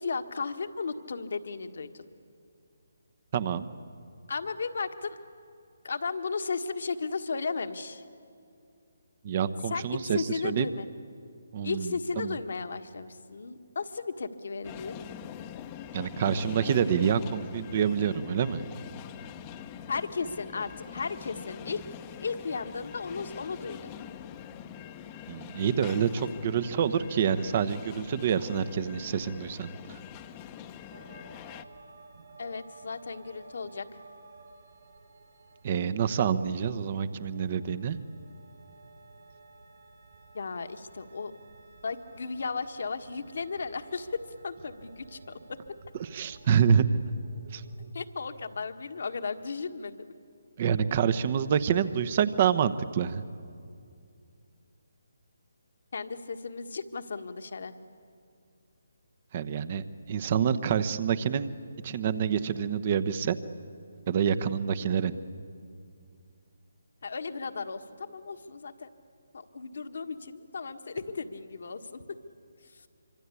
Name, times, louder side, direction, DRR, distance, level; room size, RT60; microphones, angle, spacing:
voice 1, 0.0-2.0 4.3-5.2 5.8-8.0 9.7-10.9 11.6-15.0 19.9-21.8 22.2-23.9 32.4-34.0 40.3-41.3 41.8-45.6 47.9-50.1 55.9-57.7 67.0-68.9 69.3-72.2 72.6-72.9, left 4 dB, 65° left, 8 dB, 1.6 m, -35 dB
voice 2, 3.3-3.7 9.2-10.7 11.5-12.4 15.9-18.6 25.3-30.0 35.6-38.0 46.0-47.0 47.5-47.6 50.6-53.2 59.3-61.5 61.8-63.4 64.1-65.1, right 7 dB, 40° right, 13 dB, 1.0 m, -27 dB
sound 1, 14.6-31.6, left 9 dB, 25° left, 0.9 m, -44 dB
sound 2, 30.9-47.9, right 3 dB, 65° right, 4.5 m, -54 dB
25.5 x 25.5 x 8.5 m, 2.4 s
figure-of-eight pair, 150°, 0 cm